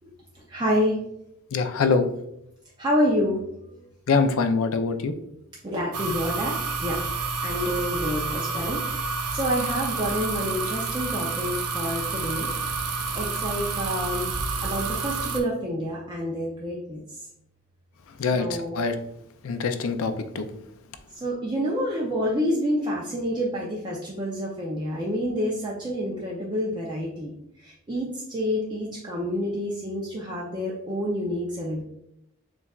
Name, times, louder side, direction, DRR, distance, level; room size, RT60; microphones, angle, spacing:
voice 1, 0.5-1.0 2.8-3.8 5.6-7.1 7.4-12.5 13.1-14.3 14.6-17.3 18.3-18.8 21.1-27.3 27.6-31.8, equal, 20° right, -4 dB, 0.5 m, -28 dB
voice 2, 1.5-2.1 4.1-5.1 18.1-19.0 19.4-20.5, left 4 dB, 60° left, 8 dB, 0.4 m, -24 dB
sound 1, 5.9-15.4, right 4 dB, 80° right, 0.5 m, -29 dB
6.9 x 2.3 x 2.3 m, 0.80 s
head